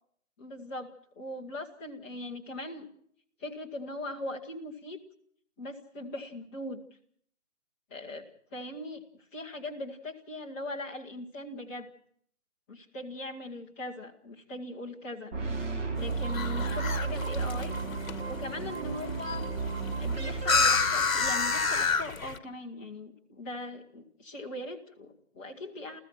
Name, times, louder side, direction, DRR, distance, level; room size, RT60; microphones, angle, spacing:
voice 1, 0.4-2.9 3.4-5.0 5.6-6.8 7.9-9.0 9.3-11.9 12.7-15.6 15.9-17.8 18.2-19.6 20.0-26.0, left 1 dB, 10° left, -2 dB, 1.0 m, -40 dB
sound 1, 15.3-21.5, right 4 dB, 10° right, 1.0 m, -33 dB
sound 2, 16.0-22.4, left 4 dB, 60° left, 1.7 m, -30 dB
29.0 x 15.0 x 6.1 m, 0.64 s
figure-of-eight pair, 155°, 45 cm